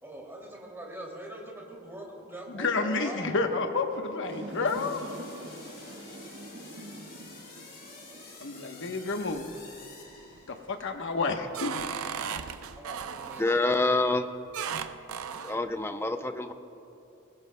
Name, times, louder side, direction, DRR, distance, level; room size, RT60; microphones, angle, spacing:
voice 1, 0.0-3.2 12.8-13.4, right 1 dB, 10° right, -2 dB, 2.5 m, -42 dB
voice 2, 2.5-5.0 8.4-9.5 10.5-11.7, left 3 dB, 60° left, 5 dB, 1.0 m, -30 dB
sound 1, 4.3-11.2, right 1 dB, 60° right, 1.5 m, -46 dB
sound 2, 4.7-10.9, left 4 dB, 45° left, 2.6 m, -50 dB
sound 3, 9.1-9.8 10.2-10.6 11.1-13.7 14.5-15.6, right 7 dB, 85° right, 0.6 m, -36 dB
voice 3, 13.4-14.3 15.4-16.5, left 2 dB, 10° left, 7 dB, 0.5 m, -26 dB
21.5 x 19.5 x 2.2 m, 2.7 s
head